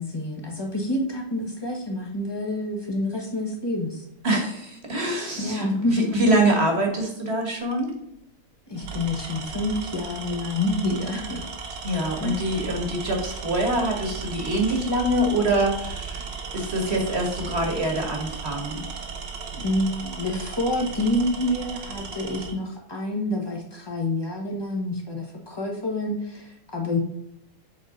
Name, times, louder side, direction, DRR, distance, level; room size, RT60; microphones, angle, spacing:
voice 1, 0.0-4.0 5.4-5.9 8.7-11.4 12.2-12.4 19.5-27.0, left 1 dB, 15° left, 0 dB, 0.9 m, -28 dB
voice 2, 4.2-7.9 11.8-16.3 16.5-18.8 20.0-20.1, right 1 dB, 35° right, 1 dB, 1.5 m, -25 dB
Tools, 7.6-7.9 8.7-22.6, right 5 dB, 60° right, 1.5 m, -36 dB
7.5 x 4.1 x 3.9 m, 0.79 s
omnidirectional pair, 2.3 m